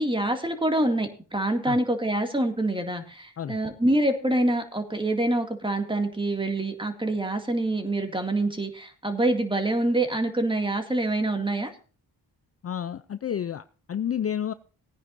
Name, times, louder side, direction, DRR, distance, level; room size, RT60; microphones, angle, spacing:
voice 1, 0.0-11.7, right 1 dB, 10° right, 2.2 m, -26 dB
voice 2, 12.6-14.5, left 9 dB, 35° left, 0.5 m, -30 dB
20.0 x 9.9 x 2.6 m
cardioid pair, 95°, 41 cm